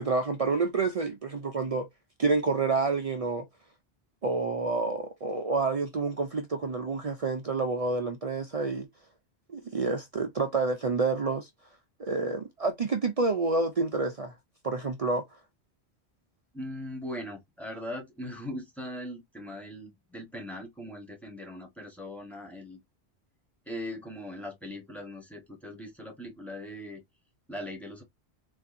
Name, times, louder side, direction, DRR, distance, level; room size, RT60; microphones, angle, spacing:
voice 1, 0.0-1.9 2.2-3.5 4.2-8.9 9.5-11.5 12.0-14.3 14.6-15.3, right 3 dB, 50° right, 0.4 m, -28 dB
voice 2, 16.5-22.8 23.7-27.0 27.5-28.0, left 1 dB, ahead, 0.9 m, -40 dB
4.0 x 2.6 x 2.4 m
omnidirectional pair, 1.1 m